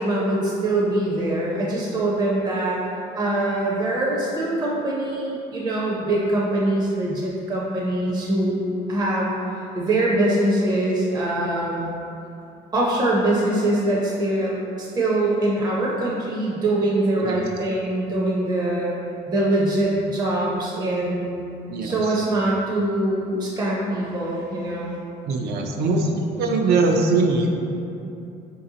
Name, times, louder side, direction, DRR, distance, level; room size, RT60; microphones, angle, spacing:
voice 1, 0.0-2.8 3.2-11.9 12.7-18.9 19.3-21.5 21.8-25.0, right 1 dB, 25° right, -5 dB, 0.5 m, -23 dB
voice 2, 25.3-26.1 26.4-27.5, right 3 dB, 70° right, 2 dB, 0.4 m, -21 dB
4.1 x 2.6 x 2.7 m, 2.7 s
cardioid pair, 110°, 17 cm